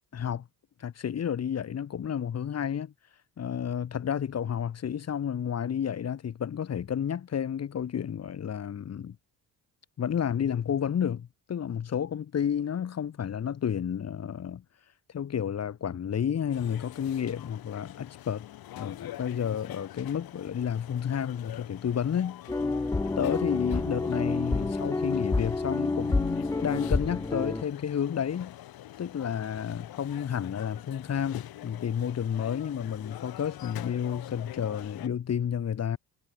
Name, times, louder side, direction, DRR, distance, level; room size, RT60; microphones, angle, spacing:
voice 1, 0.1-0.5 0.8-2.9 3.4-9.2 10.0-14.6 15.1-18.5 18.8-22.4 23.2-28.5 29.0-36.0, left 8 dB, 40° left, 2.0 m, -31 dB
sound 1, 16.5-35.1, left 14 dB, 70° left, 1.7 m, -45 dB
sound 2, 22.5-27.6, left 3 dB, 10° left, 0.5 m, -28 dB
cardioid pair, 125°, 38 cm